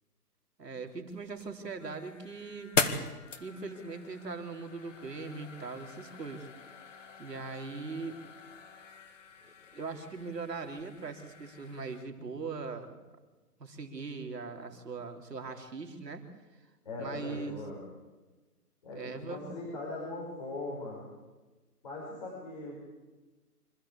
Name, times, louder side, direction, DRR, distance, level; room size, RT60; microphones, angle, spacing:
voice 1, 0.6-2.7 3.4-6.5 7.2-8.2 9.7-12.9 13.6-16.2 17.0-17.6 18.9-19.4, right 4 dB, 85° right, 4 dB, 3.8 m, -40 dB
sound 1, 1.1-12.0, left 4 dB, 50° left, 1.9 m, -40 dB
voice 2, 16.8-17.8 18.8-21.1 21.8-22.8, left 2 dB, 25° left, -4 dB, 5.3 m, -40 dB
26.0 x 14.5 x 8.6 m, 1.2 s
hypercardioid pair, 180°, 47 cm